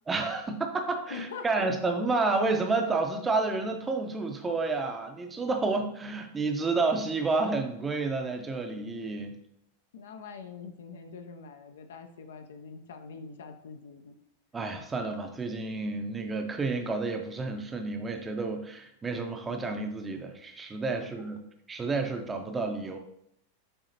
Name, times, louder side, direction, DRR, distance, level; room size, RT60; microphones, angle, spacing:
voice 1, 0.1-9.3 14.5-21.4 21.7-23.0, right 3 dB, 15° right, 5 dB, 0.6 m, -30 dB
voice 2, 1.1-1.7 9.9-14.2, left 5 dB, 60° left, 7 dB, 0.5 m, -43 dB
6.7 x 2.8 x 2.8 m, 0.75 s
figure-of-eight pair, 90°, 0 cm